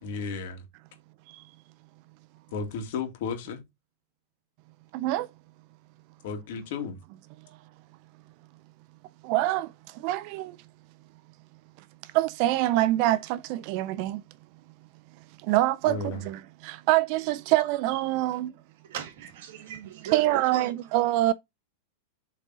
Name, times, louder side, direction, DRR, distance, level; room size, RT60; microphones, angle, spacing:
voice 1, 0.0-0.6 2.5-3.6 6.2-7.0 15.8-16.2, left 4 dB, 60° left, 2.1 m, -33 dB
voice 2, 4.9-5.3 9.2-10.6 12.0-14.2 15.4-18.5 20.1-21.3, right 16 dB, 45° right, 0.3 m, -25 dB
voice 3, 18.9-20.7, right 10 dB, 60° right, 1.6 m, -38 dB
7.5 x 3.8 x 4.0 m
supercardioid pair, 160°, 0 cm